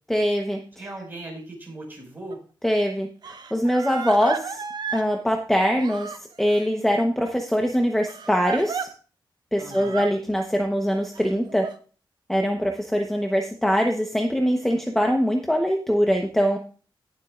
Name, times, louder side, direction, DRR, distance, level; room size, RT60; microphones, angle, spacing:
voice 1, 0.1-0.8 2.6-4.6 4.9-6.1 6.4-8.9 9.5-11.6 12.3-16.6, equal, 5° left, 3 dB, 1.0 m, -23 dB
voice 2, 0.8-2.4 9.6-10.1, right 1 dB, 25° right, -1 dB, 5.5 m, -38 dB
Crying sobbing, 2.3-2.4 3.2-5.1 5.8-6.7 8.1-8.9 9.7-10.1 11.1-11.7, right 6 dB, 55° right, 0.9 m, -33 dB
18.5 x 7.5 x 2.5 m, 0.39 s
wide cardioid pair, 155°, 9 cm